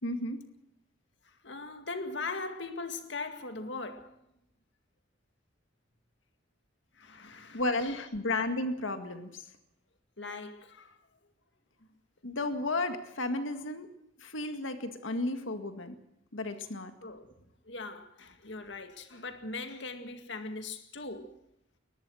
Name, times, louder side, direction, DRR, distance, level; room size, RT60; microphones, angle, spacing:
voice 1, 0.0-0.4 7.5-9.4 12.2-13.9 14.2-16.0 16.3-16.9, left 2 dB, 85° left, 2.0 m, -33 dB
voice 2, 1.2-4.2 6.9-8.1 10.2-11.0 17.0-17.3 17.6-21.4, left 3 dB, 65° left, 2.1 m, -40 dB
22.5 x 20.5 x 6.5 m
head